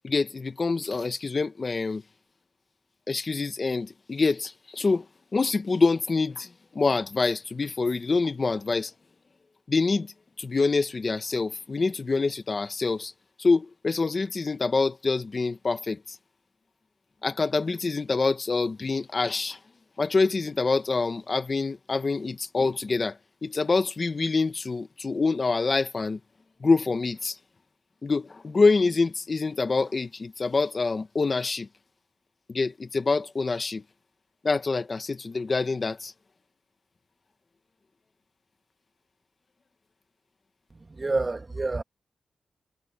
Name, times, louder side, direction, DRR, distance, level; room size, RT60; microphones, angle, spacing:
voice 1, 0.0-2.0 3.1-5.0 5.3-8.9 9.7-10.1 10.4-13.1 13.4-16.0 17.2-19.6 20.0-26.2 26.6-27.4 28.0-31.7 32.5-33.8 34.4-36.1, left 4 dB, 40° left, 1.5 m, -26 dB
voice 2, 40.7-41.8, right 3 dB, 30° right, 2.1 m, -29 dB
wide cardioid pair, 105°, 0 cm